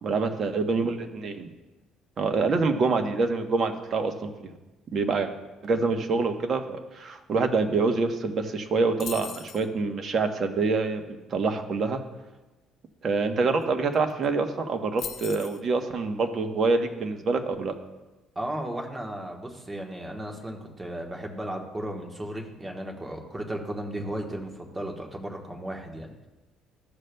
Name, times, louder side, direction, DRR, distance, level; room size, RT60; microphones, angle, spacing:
voice 1, 0.0-1.5 2.2-4.3 4.9-5.3 5.6-12.0 13.0-17.7, right 4 dB, 45° right, 5 dB, 0.9 m, -26 dB
sound 1, 9.0-9.7 13.6-13.7 13.9-14.3 15.0-15.6, left 8 dB, 50° left, 0.6 m, -38 dB
voice 2, 18.3-26.1, right 1 dB, 15° right, 1 dB, 1.2 m, -35 dB
14.0 x 6.4 x 2.3 m, 1.1 s
cardioid pair, 110°, 0 cm